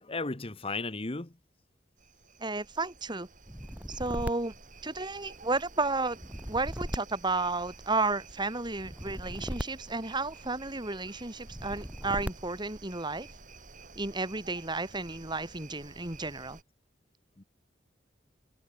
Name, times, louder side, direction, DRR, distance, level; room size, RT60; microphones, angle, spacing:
voice 1, 0.0-1.3 17.4-17.5, left 3 dB, 30° left, 1.2 m, -35 dB
sound 1, 2.0-16.6, right 3 dB, 45° right, 7.5 m, -52 dB
voice 2, 2.4-3.3 3.9-4.5 4.8-6.2 6.5-13.3 14.0-16.6, right 3 dB, 25° right, 2.8 m, -32 dB
sound 2, 3.4-5.4 6.1-8.0 8.8-10.7 11.4-12.8, equal, 10° right, 2.1 m, -39 dB
head